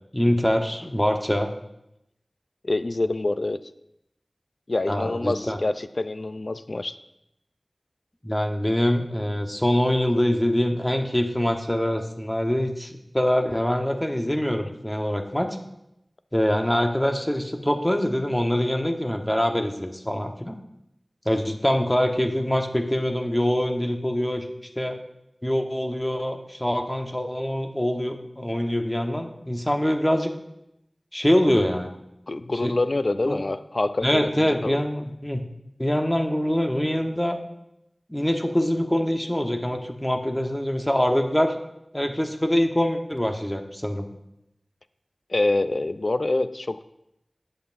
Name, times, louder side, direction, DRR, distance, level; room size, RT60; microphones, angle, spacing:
voice 1, 0.1-1.5 4.9-5.6 8.2-15.6 16.3-20.6 21.2-24.5 24.8-25.0 25.4-30.3 31.1-32.0 32.6-32.7 33.3-33.4 34.0-35.4 35.8-37.4 38.1-41.6 41.9-44.1, equal, 15° left, 4 dB, 1.1 m, -24 dB
voice 2, 2.6-3.6 4.7-6.9 32.3-34.8 45.3-46.8, left 2 dB, 65° left, 12 dB, 0.5 m, -26 dB
18.0 x 7.8 x 2.6 m, 0.84 s
wide cardioid pair, 50°, 0 cm